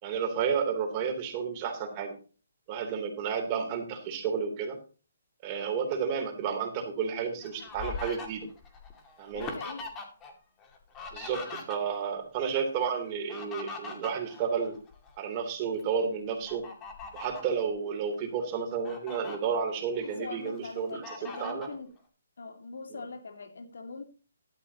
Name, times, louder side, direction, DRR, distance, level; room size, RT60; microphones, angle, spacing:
voice 1, 0.0-2.1 2.7-4.8 5.4-8.5 9.2-9.5 11.1-14.8 15.2-16.7 17.1-21.7, right 6 dB, 30° right, 3.2 m, -31 dB
Fowl, 7.0-10.3 10.6-12.1 13.1-15.2 15.6-15.8 16.5-17.5 18.1-18.2 18.6-19.4 19.9-20.6 21.0-21.8, left 4 dB, 20° left, 2.3 m, -42 dB
voice 2, 9.3-9.8 20.0-21.9 22.4-24.0, left 4 dB, 75° left, 2.2 m, -42 dB
12.5 x 12.0 x 2.9 m
hypercardioid pair, 150°, 0 cm